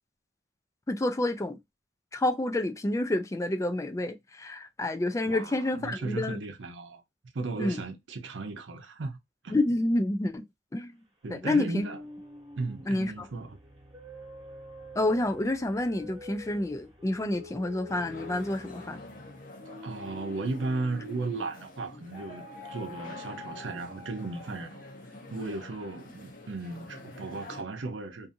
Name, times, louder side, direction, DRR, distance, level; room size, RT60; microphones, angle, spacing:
voice 1, 0.9-1.6 2.1-6.4 7.6-7.8 9.5-10.4 10.7-10.9 11.3-11.9 12.9-13.3 15.0-19.0, left 1 dB, 15° left, 0.3 m, -28 dB
voice 2, 5.2-7.0 7.3-9.2 9.4-9.6 11.2-12.0 12.6-13.6 19.8-24.8 25.3-28.3, right 3 dB, 80° right, 0.7 m, -35 dB
sound 1, 11.4-21.6 22.1-24.9, left 1 dB, 25° right, 1.0 m, -47 dB
sound 2, 17.9-27.6, left 2 dB, 45° left, 0.7 m, -47 dB
2.6 x 2.5 x 2.6 m
head